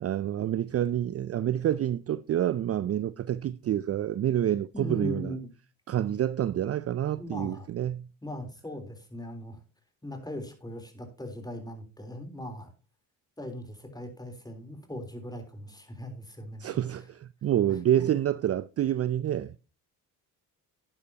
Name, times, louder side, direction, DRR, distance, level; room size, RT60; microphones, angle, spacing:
voice 1, 0.0-5.3 5.9-8.1 16.6-19.6, right 11 dB, 35° right, 0.5 m, -28 dB
voice 2, 4.7-5.5 7.2-7.7 8.2-9.6 10.0-12.7 13.4-16.8 17.7-18.1, left 1 dB, 10° left, 3.6 m, -39 dB
12.0 x 9.6 x 2.9 m
supercardioid pair, 65°, 41 cm